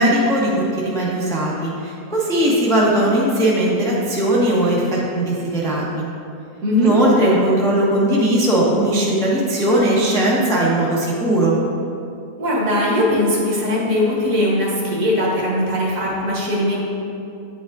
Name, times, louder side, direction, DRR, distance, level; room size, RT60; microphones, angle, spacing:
voice 1, 0.0-6.1 6.8-11.6, right 1 dB, 5° left, -5 dB, 0.4 m, -18 dB
voice 2, 6.6-6.9 12.4-16.8, left 1 dB, 60° right, -4 dB, 1.5 m, -20 dB
8.4 x 4.9 x 2.5 m, 2.6 s
omnidirectional pair, 1.7 m